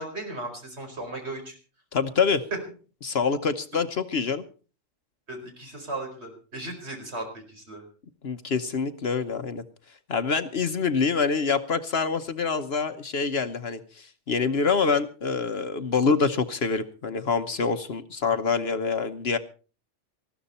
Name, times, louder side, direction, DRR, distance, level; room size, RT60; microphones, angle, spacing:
voice 1, 0.0-1.6 5.3-7.8, right 2 dB, 55° right, 3 dB, 4.9 m, -36 dB
voice 2, 1.9-2.4 3.0-4.4 8.2-9.6 10.1-19.4, left 5 dB, 55° left, 10 dB, 1.2 m, -26 dB
20.0 x 14.0 x 4.3 m, 0.37 s
omnidirectional pair, 1.3 m